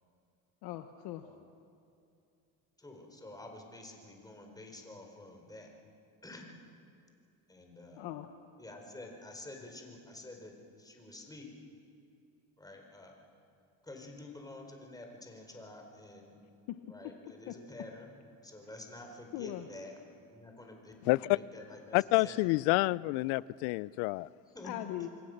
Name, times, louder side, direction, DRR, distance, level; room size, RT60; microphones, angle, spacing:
voice 1, 0.6-1.2 8.0-8.3 16.7-16.8 17.5-17.6 19.3-19.7 24.6-25.1, left 14 dB, 70° left, 1.2 m, -39 dB
voice 2, 2.8-5.7 6.2-6.4 7.5-8.1 8.6-10.5 10.8-11.5 12.6-13.1 13.8-16.4 16.9-18.1 18.4-19.9 20.2-22.4 22.7-22.8 24.5-24.7, left 2 dB, 10° left, 4.5 m, -49 dB
voice 3, 21.0-21.4 21.9-24.3, left 22 dB, 90° left, 0.5 m, -28 dB
27.5 x 22.0 x 6.6 m
cardioid pair, 115°, 38 cm